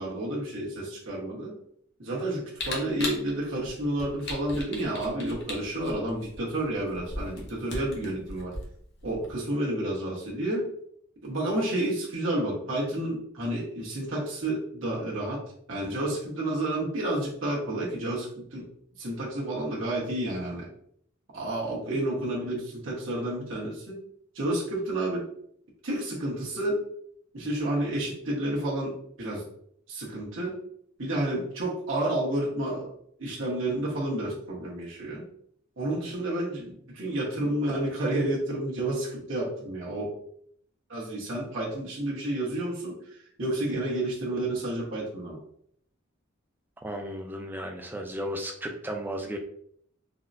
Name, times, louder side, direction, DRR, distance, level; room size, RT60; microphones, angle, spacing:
voice 1, 0.0-1.5 2.0-8.5 9.0-10.7 11.2-15.4 15.7-18.7 19.0-20.7 21.3-24.0 24.3-25.2 25.8-26.8 27.3-29.4 29.9-30.6 31.0-32.9 33.2-35.3 35.8-40.1 40.9-42.9 43.4-45.4, right 1 dB, 70° right, -5 dB, 1.2 m, -30 dB
Camera, 2.5-9.3, left 2 dB, 55° left, 0.8 m, -38 dB
voice 2, 46.8-49.4, equal, 10° right, 3 dB, 0.4 m, -34 dB
4.0 x 2.1 x 2.6 m, 0.67 s
head